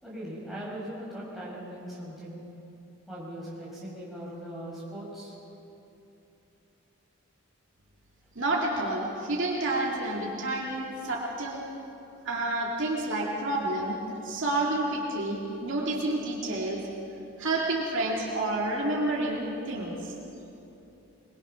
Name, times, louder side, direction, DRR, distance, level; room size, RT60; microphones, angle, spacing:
voice 1, 0.0-2.4 3.1-5.4, right 1 dB, ahead, -7 dB, 5.6 m, -39 dB
voice 2, 8.4-11.7 12.2-16.8 17.4-20.1, right 2 dB, 60° right, -3 dB, 2.3 m, -29 dB
21.5 x 21.0 x 5.8 m, 3.0 s
head